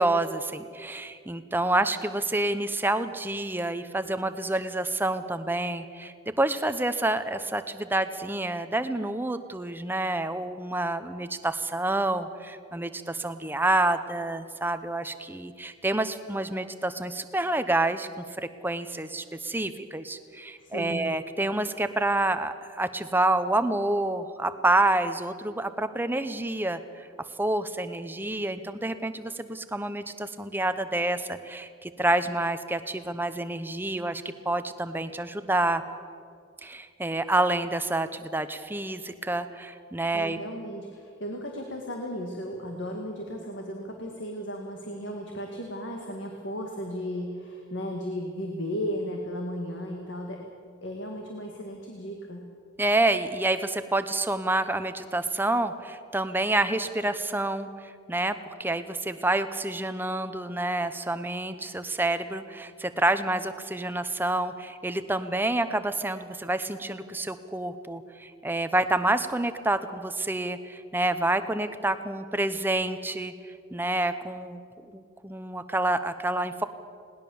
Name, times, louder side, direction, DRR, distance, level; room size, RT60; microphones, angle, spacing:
voice 1, 0.0-27.1 27.4-35.8 36.6-40.4 52.8-74.6 74.9-76.6, right 2 dB, 10° right, 10 dB, 0.8 m, -28 dB
voice 2, 20.6-21.0 40.1-50.4 50.8-52.4, equal, 60° left, 1 dB, 2.0 m, -35 dB
20.5 x 18.5 x 7.2 m, 2.3 s
head